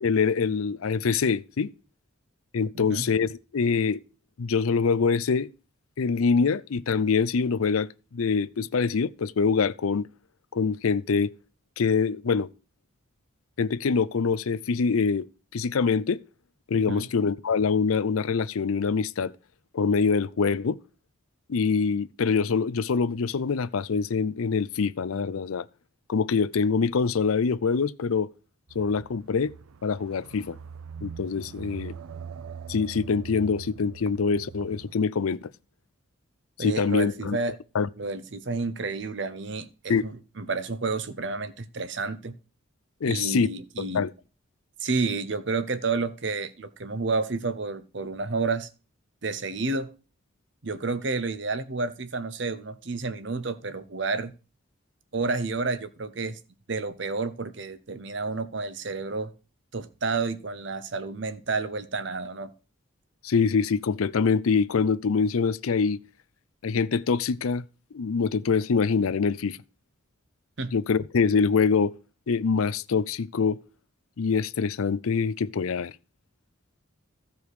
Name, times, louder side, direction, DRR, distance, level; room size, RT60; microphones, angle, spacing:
voice 1, 0.0-1.7 2.5-4.0 4.4-5.5 6.0-10.1 10.5-11.3 11.8-12.5 13.6-15.3 15.5-16.2 16.7-19.3 19.7-20.8 21.5-25.7 26.1-28.3 28.7-29.5 29.8-30.6 31.0-32.0 32.7-35.5 36.6-37.4 37.7-37.9 39.9-40.0 43.0-43.5 43.8-44.1 63.2-66.0 66.6-67.6 67.9-69.6 70.7-71.9 72.3-73.6 74.2-75.9, left 5 dB, 90° left, 0.5 m, -24 dB
voice 2, 2.7-3.0 16.7-17.1 36.6-37.5 38.0-42.3 43.0-44.1 44.8-48.7 49.2-49.9 50.6-54.3 55.1-56.4 56.7-59.3 59.7-62.5 70.6-70.7, right 3 dB, 60° right, 0.8 m, -30 dB
sound 1, 28.7-35.0, right 6 dB, 90° right, 0.4 m, -42 dB
15.0 x 5.2 x 4.8 m
head